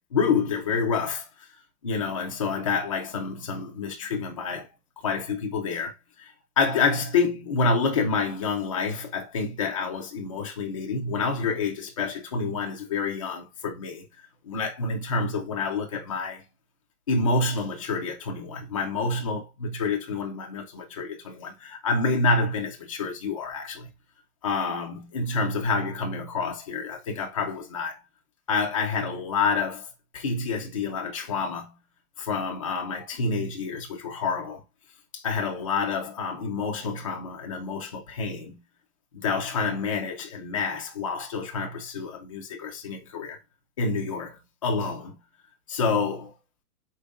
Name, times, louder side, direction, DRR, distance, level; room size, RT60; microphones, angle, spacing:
voice 1, 0.1-1.5 1.8-4.7 5.0-14.0 14.4-16.4 17.1-23.9 24.4-28.0 28.5-31.8 32.2-34.6 35.1-38.6 39.1-43.4 43.8-45.2 45.7-46.3, left 4 dB, 25° left, 0.5 m, -28 dB
4.9 x 4.6 x 2.4 m
hypercardioid pair, 175°, 44 cm